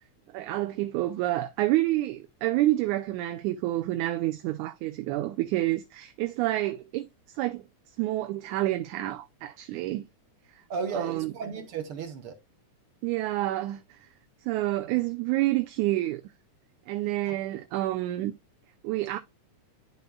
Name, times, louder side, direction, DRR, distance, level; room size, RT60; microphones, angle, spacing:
voice 1, 0.3-7.1 7.3-7.7 8.0-10.1 10.9-11.3 13.0-14.1 14.5-16.2 16.9-18.3 18.8-19.2, right 16 dB, 80° right, 2.0 m, -28 dB
voice 2, 10.7-12.3, right 5 dB, 60° right, 1.5 m, -34 dB
12.0 x 4.1 x 2.3 m
omnidirectional pair, 3.6 m